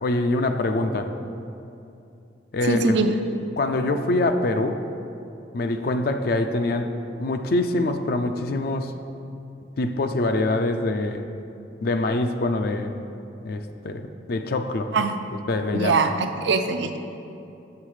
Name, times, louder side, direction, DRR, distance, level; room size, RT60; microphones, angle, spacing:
voice 1, 0.0-1.1 2.5-3.0 3.6-4.8 5.5-9.0 9.8-11.3 11.8-13.0 13.4-14.9 15.5-16.0, left 2 dB, 55° left, 7 dB, 0.4 m, -24 dB
voice 2, 2.7-3.1 14.9-15.2 15.7-17.0, right 4 dB, 75° right, 8 dB, 0.5 m, -22 dB
7.4 x 6.2 x 4.8 m, 2.7 s
head